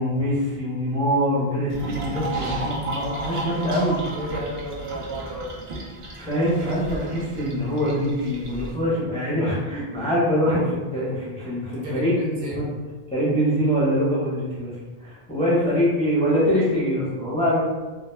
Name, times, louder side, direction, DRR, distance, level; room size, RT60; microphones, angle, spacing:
voice 1, 0.0-4.0 6.2-12.6 13.1-14.7 15.0-17.6, equal, 10° left, -8 dB, 0.5 m, -24 dB
sound 1, 1.7-8.7, right 2 dB, 55° right, 0.3 m, -34 dB
voice 2, 4.0-5.5 11.8-12.7, equal, 70° right, -5 dB, 0.9 m, -32 dB
2.1 x 2.1 x 3.0 m, 1.3 s
omnidirectional pair, 1.1 m